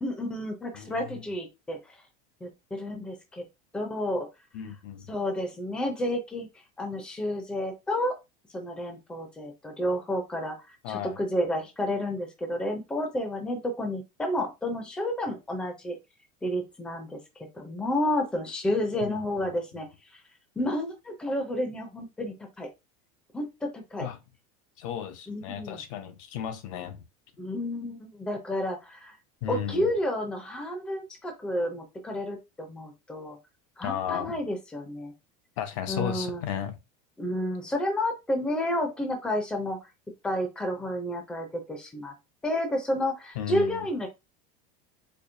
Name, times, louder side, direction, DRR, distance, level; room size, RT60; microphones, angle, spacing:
voice 1, 0.0-1.8 2.4-3.4 3.7-4.3 5.1-6.5 6.8-8.2 8.5-10.6 10.9-16.0 16.4-17.2 17.5-19.9 20.6-22.7 23.3-24.1 25.3-25.8 27.4-29.2 29.5-33.4 33.8-35.1 35.9-36.4 37.2-39.8 40.2-42.1 42.4-44.1, left 1 dB, 5° left, 0.5 m, -30 dB
voice 2, 0.7-1.3 4.5-5.1 10.8-11.2 19.0-19.8 24.0-24.2 24.8-27.0 29.4-29.9 33.8-34.4 35.6-36.8 43.3-43.9, left 10 dB, 65° left, 0.7 m, -35 dB
4.4 x 2.6 x 2.6 m
cardioid pair, 175°, 18 cm